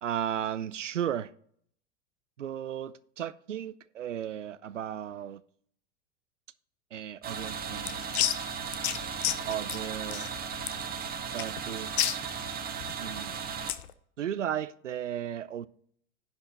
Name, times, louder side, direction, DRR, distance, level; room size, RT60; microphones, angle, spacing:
voice 1, 0.0-1.3 2.4-5.4 6.9-8.2 9.5-10.3 11.3-12.2 13.0-13.4 14.2-15.7, right 10 dB, 85° right, 0.6 m, -35 dB
sound 1, 7.2-13.7, right 6 dB, 25° right, 1.2 m, -36 dB
sound 2, 7.4-13.9, left 13 dB, 65° left, 0.7 m, -33 dB
10.5 x 5.7 x 3.9 m
figure-of-eight pair, 90°, 36 cm